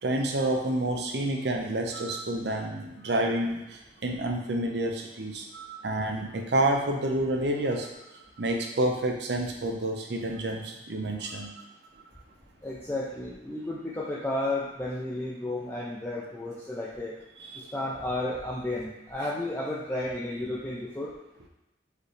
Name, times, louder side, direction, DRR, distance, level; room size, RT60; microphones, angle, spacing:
voice 1, 0.0-7.9 8.4-11.5 17.5-17.6, right 1 dB, 65° right, 2 dB, 0.6 m, -29 dB
voice 2, 12.6-17.1 17.5-21.1, left 1 dB, 10° left, -6 dB, 0.4 m, -32 dB
4.8 x 3.2 x 3.2 m, 0.93 s
head